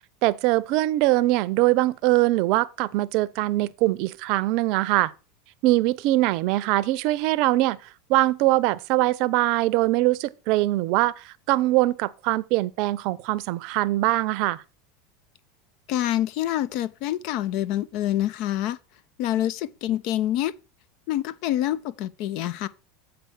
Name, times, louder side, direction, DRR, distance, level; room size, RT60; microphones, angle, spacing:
voice 1, 0.2-5.1 5.6-7.8 8.1-14.6, right 17 dB, 60° right, 0.6 m, -22 dB
voice 2, 15.9-18.8 19.2-20.5 21.1-22.7, left 13 dB, 60° left, 0.6 m, -26 dB
7.8 x 4.6 x 6.3 m
hypercardioid pair, 105°, 0 cm